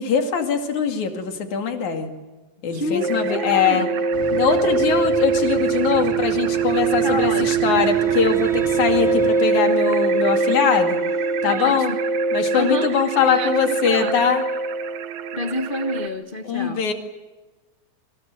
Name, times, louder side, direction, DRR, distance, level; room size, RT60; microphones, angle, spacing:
voice 1, 0.0-2.1 2.6-3.9 4.3-11.0 11.4-12.0 12.3-14.4 16.4-16.9, left 6 dB, 80° left, 5 dB, 3.9 m, -22 dB
voice 2, 2.7-3.9 7.0-7.9 11.4-11.9 12.5-12.9 13.3-14.1 15.3-16.8, left 1 dB, 40° left, 5 dB, 0.7 m, -28 dB
sound 1, 3.0-16.1, right 4 dB, 75° right, 2.6 m, -22 dB
sound 2, 4.1-9.3, right 2 dB, 25° right, 2.5 m, -35 dB
Bowed string instrument, 7.6-12.6, right 2 dB, ahead, 2.8 m, -40 dB
27.5 x 25.0 x 7.8 m, 1.2 s
omnidirectional pair, 3.3 m